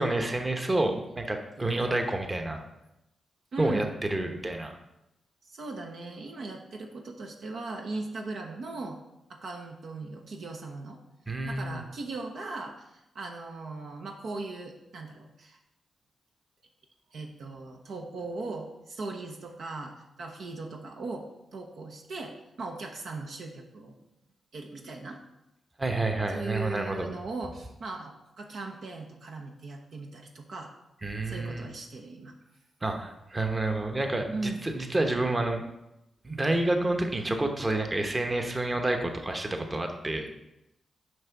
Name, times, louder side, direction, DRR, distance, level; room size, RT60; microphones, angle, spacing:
voice 1, 0.0-2.6 3.6-4.7 11.3-11.8 25.8-27.1 31.0-31.7 32.8-35.6 36.2-40.3, right 2 dB, 30° right, 5 dB, 1.1 m, -29 dB
voice 2, 3.5-3.9 5.4-9.0 9.3-11.0 11.5-15.6 17.1-24.0 24.5-25.2 26.3-30.7 31.2-32.3 34.3-34.6, right 3 dB, 70° right, 2 dB, 0.8 m, -38 dB
6.4 x 5.2 x 4.6 m, 0.91 s
supercardioid pair, 50°, 0 cm